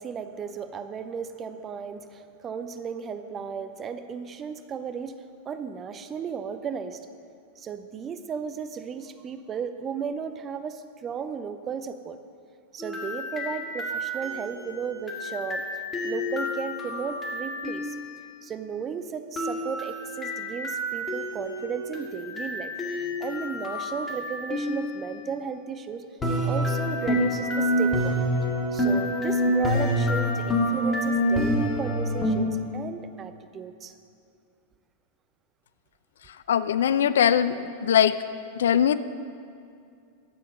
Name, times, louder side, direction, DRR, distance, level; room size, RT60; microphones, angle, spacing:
voice 1, 0.0-5.1 5.4-7.0 7.6-12.2 12.7-15.6 16.0-17.9 18.4-26.0 26.4-28.2 28.7-33.9, right 6 dB, 25° right, 10 dB, 0.6 m, -35 dB
sound 1, 12.8-18.1 19.4-25.1 26.2-32.3, equal, 20° left, 1.8 m, -28 dB
voice 2, 36.3-38.2 38.6-39.0, left 9 dB, 60° left, 14 dB, 0.3 m, -21 dB
11.0 x 7.8 x 5.4 m, 2.4 s
figure-of-eight pair, 90°, 0 cm